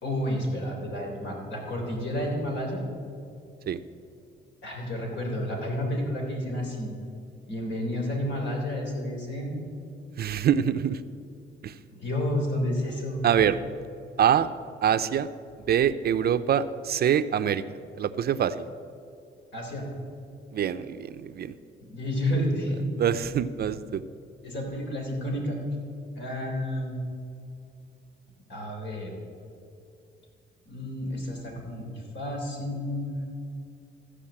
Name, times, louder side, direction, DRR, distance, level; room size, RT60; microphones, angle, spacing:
voice 1, 0.0-2.8 4.6-6.9 7.5-9.6 11.9-13.2 19.5-19.9 21.8-22.9 24.4-25.6 26.1-26.9 28.5-29.1 30.6-33.2, left 1 dB, 65° left, 0 dB, 3.4 m, -30 dB
voice 2, 10.2-11.0 11.6-11.7 13.2-13.6 14.2-14.5 14.8-15.3 15.7-17.6 18.0-18.6 20.5-21.5 23.0-24.0, right 9 dB, 55° right, 12 dB, 0.5 m, -24 dB
14.0 x 5.0 x 8.6 m, 2.5 s
cardioid pair, 90°, 20 cm